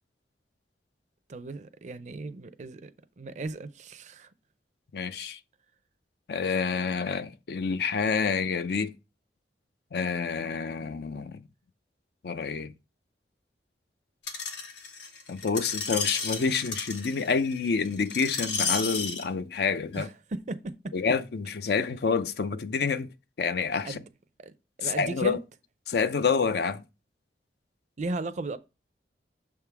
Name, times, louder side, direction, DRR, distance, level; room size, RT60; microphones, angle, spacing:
voice 1, 1.3-2.9 3.2-4.3 20.0-20.9 23.8-24.0 24.4-24.5 24.8-25.4 28.0-28.6, right 2 dB, 45° right, 0.5 m, -36 dB
voice 2, 4.9-5.4 6.3-8.9 9.9-11.3 12.2-12.7 15.3-20.1 20.9-23.1 23.4-24.0 24.8-25.4 25.9-26.8, left 5 dB, 65° left, 0.4 m, -28 dB
Screech, 14.3-19.2 19.9-20.0, left 5 dB, 85° left, 1.2 m, -32 dB
6.6 x 3.6 x 4.6 m
head